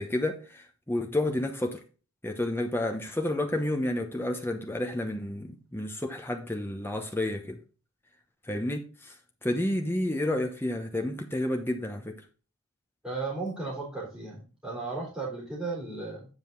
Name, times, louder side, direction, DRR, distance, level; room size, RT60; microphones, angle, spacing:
voice 1, 0.0-1.8 2.2-7.6 8.5-9.1 9.4-12.2, left 1 dB, 10° left, 0.9 m, -30 dB
voice 2, 13.0-16.3, right 3 dB, 5° right, 3.6 m, -35 dB
9.5 x 5.2 x 3.9 m
head